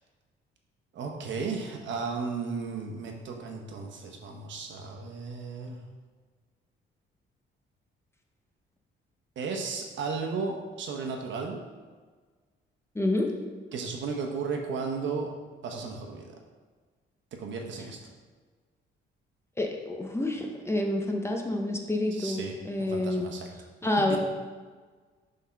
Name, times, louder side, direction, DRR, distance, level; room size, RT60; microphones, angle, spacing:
voice 1, 0.9-5.8 9.4-11.6 13.7-15.3 15.6-16.3 17.4-18.0 22.1-23.5, right 4 dB, 70° right, 2 dB, 1.0 m, -34 dB
voice 2, 12.9-13.3 19.6-23.3 23.8-24.2, left 1 dB, 15° left, 2 dB, 0.9 m, -28 dB
5.7 x 3.8 x 5.7 m, 1.4 s
cardioid pair, 90°, 20 cm